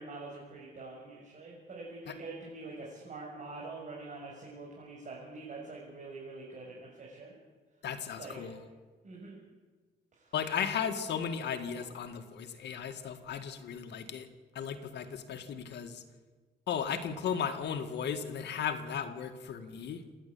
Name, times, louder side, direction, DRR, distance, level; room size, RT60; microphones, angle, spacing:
voice 1, 0.0-7.3 8.2-8.4 9.0-9.4 10.2-10.3, right 3 dB, 45° right, -4 dB, 6.3 m, -45 dB
voice 2, 7.8-8.6 10.3-14.3 14.6-16.0 16.7-20.0, left 7 dB, 80° left, 7 dB, 2.0 m, -35 dB
28.0 x 11.0 x 8.5 m, 1.4 s
cardioid pair, 130°, 18 cm